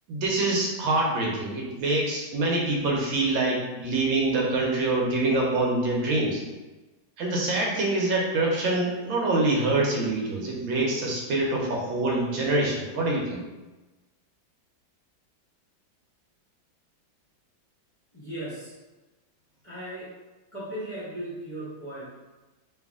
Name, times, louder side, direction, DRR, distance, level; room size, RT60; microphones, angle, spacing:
voice 1, 0.1-6.4 7.2-13.4, right 2 dB, 85° right, -2 dB, 1.6 m, -25 dB
voice 2, 18.1-18.7 19.6-20.1 20.5-22.0, right 1 dB, 20° left, -11 dB, 1.3 m, -36 dB
3.3 x 3.2 x 3.6 m, 1.1 s
omnidirectional pair, 2.1 m